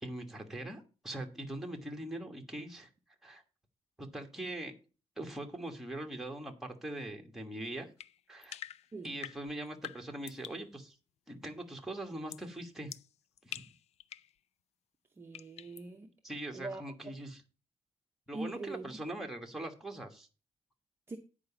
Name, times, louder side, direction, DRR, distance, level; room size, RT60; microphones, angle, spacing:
voice 1, 0.0-2.9 3.2-3.4 4.0-4.7 5.2-7.9 8.3-8.6 9.0-11.0 11.3-12.9 13.4-13.6 16.2-17.4 18.3-20.3, right 1 dB, 5° right, 1.4 m, -42 dB
sound 1, 8.0-10.7 12.3-12.5 12.9-14.3 15.3-15.9, left 11 dB, 80° left, 0.4 m, -47 dB
voice 2, 15.2-16.1 16.5-16.9 18.3-18.9 21.1-21.2, right 2 dB, 20° right, 0.7 m, -42 dB
9.3 x 4.9 x 6.8 m
wide cardioid pair, 175°, 11 cm